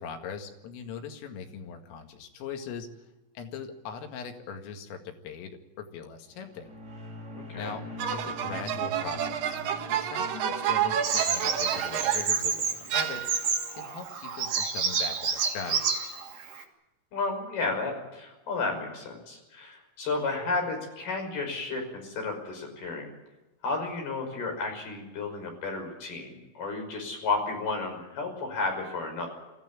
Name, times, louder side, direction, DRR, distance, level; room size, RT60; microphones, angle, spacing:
voice 1, 0.0-2.9 3.4-6.7 7.5-7.8 8.1-9.6 9.9-13.2 13.8-16.0, left 6 dB, 90° left, 5 dB, 4.7 m, -40 dB
sound 1, 6.3-13.0, left 1 dB, 20° right, 6.4 m, -44 dB
voice 2, 7.4-7.8 17.1-23.1 23.6-29.3, left 3 dB, 50° left, 2 dB, 7.4 m, -32 dB
sound 2, 8.0-12.4 12.9-13.7, right 10 dB, 65° right, 2.3 m, -30 dB
Bird vocalization bird call bird song, 11.0-16.6, right 5 dB, 50° right, 3.8 m, -30 dB
24.5 x 15.5 x 8.6 m, 1.0 s
omnidirectional pair, 5.7 m